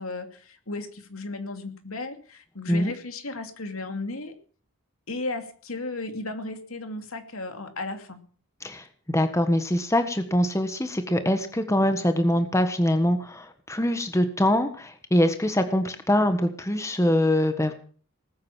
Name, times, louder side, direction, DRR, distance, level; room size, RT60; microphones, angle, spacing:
voice 1, 0.0-4.3 5.1-8.2, left 2 dB, 80° left, 7 dB, 2.7 m, -35 dB
voice 2, 8.6-17.7, left 1 dB, 15° left, 8 dB, 1.4 m, -23 dB
19.5 x 8.9 x 7.4 m, 0.43 s
head